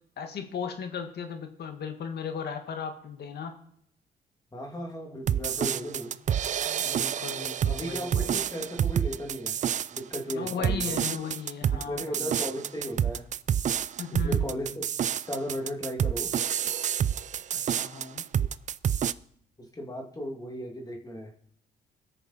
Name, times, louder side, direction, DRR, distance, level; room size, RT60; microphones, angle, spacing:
voice 1, 0.2-3.5 6.8-8.3 10.3-12.3 14.0-14.6 17.5-18.3, left 6 dB, 65° left, 6 dB, 1.7 m, -36 dB
voice 2, 4.5-6.1 7.7-9.5 9.9-11.0 11.7-13.2 14.1-14.9 15.3-16.3 19.6-21.3, equal, 20° left, 0 dB, 2.1 m, -36 dB
sound 1, 5.3-19.1, right 9 dB, 45° right, 0.4 m, -28 dB
20.0 x 6.7 x 4.1 m, 0.67 s
cardioid pair, 90°, 18 cm